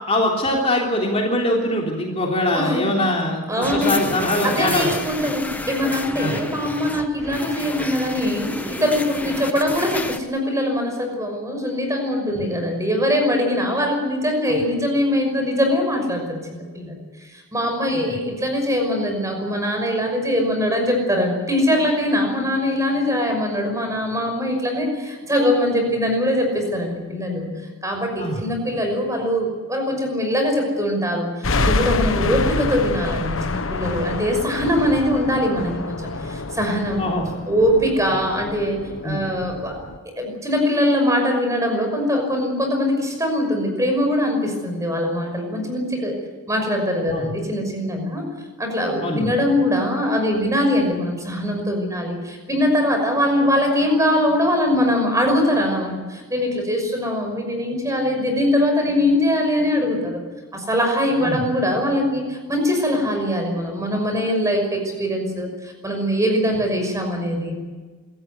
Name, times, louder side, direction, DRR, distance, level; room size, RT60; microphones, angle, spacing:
voice 1, 0.1-4.9 6.2-6.4 17.9-18.0 28.2-28.4 37.0-37.2 39.0-39.2 47.1-47.3 49.0-49.2 61.2-61.4, left 1 dB, 30° left, -1 dB, 3.4 m, -22 dB
voice 2, 2.5-2.8 3.5-4.1 4.4-16.9 17.3-27.5 27.8-37.0 37.5-38.8 39.0-39.7 40.2-46.2 46.5-48.2 48.6-60.2 60.5-67.6, left 1 dB, 15° right, 3 dB, 5.9 m, -22 dB
sound 1, 3.6-10.2, left 2 dB, 10° left, 1.1 m, -31 dB
sound 2, 31.4-40.0, left 3 dB, 70° left, 1.3 m, -27 dB
27.0 x 14.5 x 9.6 m, 1.4 s
head